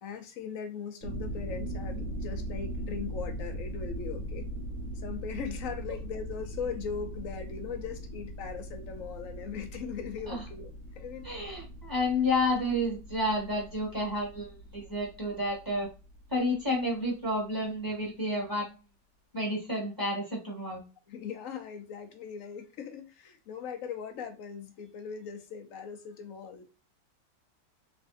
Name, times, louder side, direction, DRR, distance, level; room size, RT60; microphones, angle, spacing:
voice 1, 0.0-4.4 5.0-11.3 16.7-16.8 21.1-26.6, left 6 dB, 65° left, 0.9 m, -39 dB
sound 1, 1.0-16.8, right 1 dB, 55° right, 1.1 m, -40 dB
voice 2, 11.2-15.9 16.3-18.8 19.3-20.8, left 1 dB, 10° right, 1.4 m, -30 dB
3.4 x 3.2 x 2.5 m
omnidirectional pair, 1.9 m